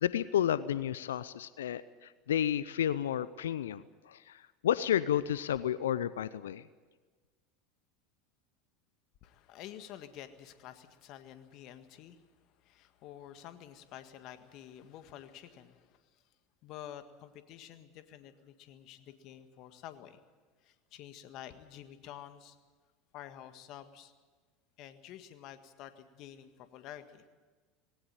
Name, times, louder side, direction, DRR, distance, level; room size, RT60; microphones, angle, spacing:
voice 1, 0.0-6.6, left 10 dB, 80° left, 17 dB, 0.6 m, -31 dB
voice 2, 9.2-12.3 12.6-16.2 16.6-20.2 20.6-22.6 23.1-24.1 24.8-27.3, left 11 dB, 55° left, 10 dB, 1.7 m, -49 dB
19.5 x 18.0 x 8.9 m, 1.4 s
hypercardioid pair, 80°, 0 cm